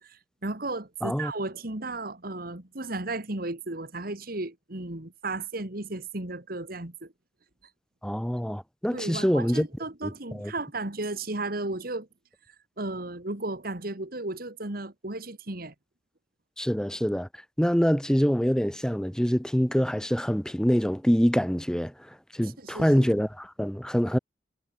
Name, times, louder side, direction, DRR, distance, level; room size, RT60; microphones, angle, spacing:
voice 1, 0.0-7.1 8.9-12.1 12.8-15.7 22.6-23.1, right 2 dB, 55° right, 2.4 m, -34 dB
voice 2, 1.0-1.3 8.0-9.7 10.0-10.1 10.4-10.5 16.6-17.3 17.6-21.9 22.3-24.2, equal, 5° left, 1.9 m, -25 dB
head